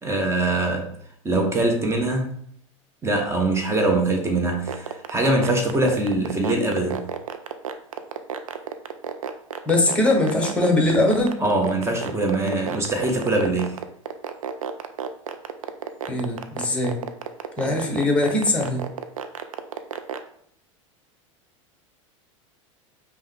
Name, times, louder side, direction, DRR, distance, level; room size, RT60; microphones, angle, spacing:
voice 1, 0.0-0.9 1.2-2.3 3.0-7.1 11.4-13.8, right 2 dB, 15° right, 2 dB, 1.0 m, -23 dB
sound 1, 4.5-20.2, right 8 dB, 85° right, 0.4 m, -31 dB
voice 2, 9.7-11.4 16.1-17.0 17.6-18.8, left 2 dB, 5° left, 1 dB, 1.2 m, -21 dB
5.3 x 2.2 x 3.4 m, 0.65 s
hypercardioid pair, 90°, 17 cm